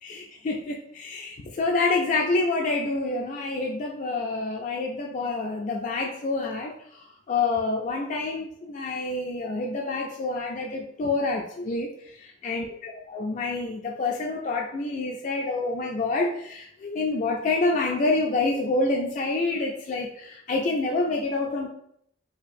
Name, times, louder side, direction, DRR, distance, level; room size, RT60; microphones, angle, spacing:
voice 1, 0.0-21.7, left 3 dB, 45° left, 0 dB, 0.3 m, -27 dB
4.4 x 2.4 x 2.5 m, 0.71 s
head